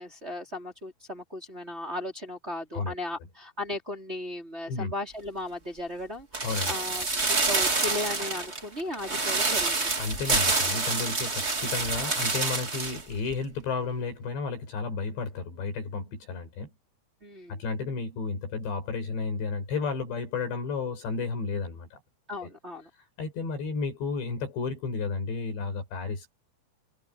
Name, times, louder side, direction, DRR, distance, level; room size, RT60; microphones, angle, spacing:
voice 1, 0.0-9.9 17.2-17.6 22.3-22.9, left 1 dB, 15° right, 4.0 m, -36 dB
sound 1, 6.3-13.0 13.3-13.4, right 3 dB, 35° right, 1.0 m, -27 dB
voice 2, 6.4-6.7 10.0-16.7 17.5-22.0 23.2-26.3, left 4 dB, 70° left, 7.6 m, -32 dB
omnidirectional pair, 5.3 m